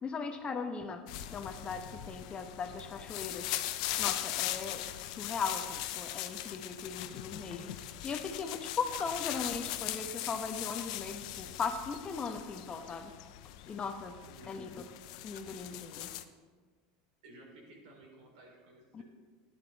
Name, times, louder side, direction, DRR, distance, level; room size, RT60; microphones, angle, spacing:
voice 1, 0.0-1.0 1.3-3.6 4.0-4.8 5.1-7.8 8.0-13.1 13.7-14.1 14.5-14.7 15.2-16.1 18.9-19.0, left 5 dB, 25° left, 6 dB, 1.0 m, -38 dB
sound 1, 1.1-16.2, left 14 dB, 70° left, 0.7 m, -40 dB
voice 2, 14.2-14.6 17.2-19.0, right 1 dB, 80° right, -1 dB, 3.9 m, -55 dB
11.5 x 10.5 x 4.1 m, 1.5 s
supercardioid pair, 120°, 4 cm